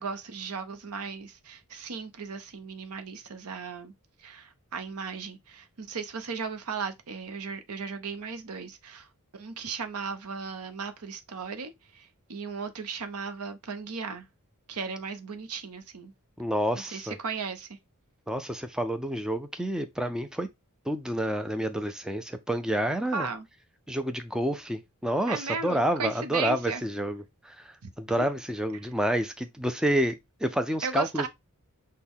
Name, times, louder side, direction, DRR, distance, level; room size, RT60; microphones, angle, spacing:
voice 1, 0.0-3.9 4.2-9.1 9.3-14.3 14.7-16.1 16.7-17.8 23.1-23.5 25.3-26.8 27.8-27.9 28.2-28.3 30.8-31.3, right 5 dB, 75° right, 0.7 m, -36 dB
voice 2, 16.4-17.2 18.3-20.5 20.9-23.3 23.9-31.2, right 1 dB, 5° right, 0.4 m, -29 dB
6.1 x 2.2 x 3.5 m
head